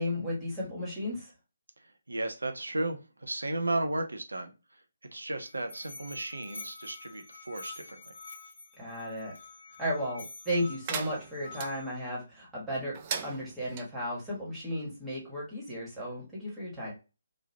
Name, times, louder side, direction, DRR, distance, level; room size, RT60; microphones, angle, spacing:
voice 1, 0.0-1.3 8.8-9.3 9.8-13.0 13.2-16.9, equal, 10° right, -6 dB, 1.4 m, -34 dB
voice 2, 2.1-4.5 5.1-8.1, right 2 dB, 75° right, 6 dB, 0.7 m, -34 dB
Musical instrument, 5.1-12.1, left 3 dB, 65° left, 1.1 m, -48 dB
sound 1, 10.8-11.7 12.9-13.9, right 7 dB, 30° right, 0.4 m, -37 dB
3.1 x 2.4 x 2.6 m, 0.30 s
figure-of-eight pair, 140°, 0 cm